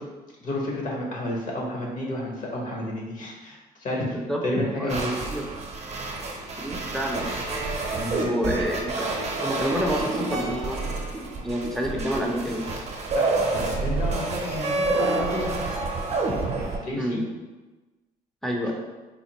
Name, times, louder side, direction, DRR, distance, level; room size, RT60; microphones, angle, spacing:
voice 1, 0.4-5.2 7.9-8.6 13.1-15.6 16.8-17.2, left 1 dB, 50° left, -2 dB, 1.0 m, -31 dB
voice 2, 4.1-4.4 4.8-5.0 5.3-5.5 6.6-7.3 8.2-10.8 11.4-12.7 17.0-17.3 18.4-18.7, equal, ahead, 0 dB, 0.5 m, -28 dB
sound 1, 4.9-16.8, right 3 dB, 40° right, 0.7 m, -28 dB
4.2 x 2.4 x 2.9 m, 1.2 s
cardioid pair, 110°, 17 cm